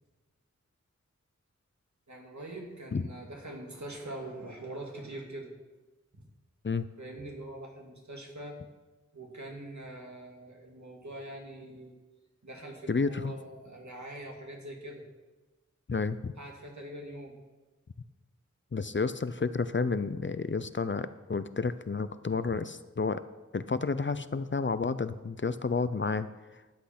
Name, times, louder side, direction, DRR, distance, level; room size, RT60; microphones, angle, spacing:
voice 1, 2.1-5.5 6.1-6.3 7.0-8.6 9.1-11.9 12.4-15.0 16.4-17.4, right 1 dB, 70° right, 0 dB, 2.3 m, -43 dB
voice 2, 12.9-13.4 15.9-16.3 18.7-23.2 23.5-26.3, left 4 dB, 40° left, 13 dB, 0.5 m, -31 dB
12.0 x 7.9 x 5.9 m, 1.2 s
wide cardioid pair, 50°, 30 cm